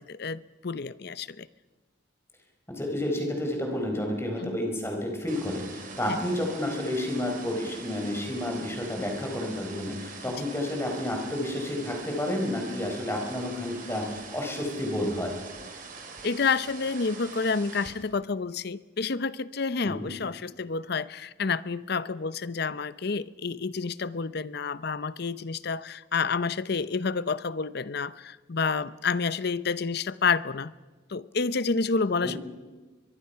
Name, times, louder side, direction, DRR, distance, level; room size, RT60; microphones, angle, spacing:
voice 1, 0.0-1.5 4.4-4.6 6.1-6.2 16.2-30.7 31.1-32.4, left 4 dB, 55° left, 17 dB, 0.7 m, -29 dB
voice 2, 2.7-15.4 19.8-20.1 32.2-32.3, left 1 dB, 15° left, 2 dB, 4.4 m, -30 dB
sound 1, 5.3-17.9, right 4 dB, 45° right, 3.5 m, -44 dB
23.5 x 22.0 x 5.7 m, 1.3 s
head